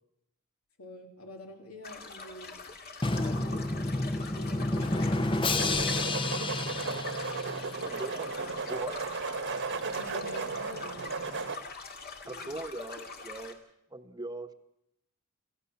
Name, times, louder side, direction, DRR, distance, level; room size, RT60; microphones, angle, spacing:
voice 1, 0.8-2.6 3.1-6.5 8.5-8.6 9.8-11.2 12.2-12.5, equal, 75° left, 3 dB, 3.6 m, -49 dB
sound 1, 1.8-13.5, left 4 dB, 50° left, 2.3 m, -44 dB
Drum, 3.0-7.9, left 2 dB, 25° left, 0.9 m, -30 dB
sound 2, 5.5-11.6, right 4 dB, 60° right, 1.4 m, -35 dB
voice 2, 7.8-8.4 8.7-9.0 12.3-13.6 13.9-14.5, right 2 dB, 20° right, 8 dB, 1.3 m, -40 dB
27.5 x 15.0 x 7.1 m, 0.82 s
head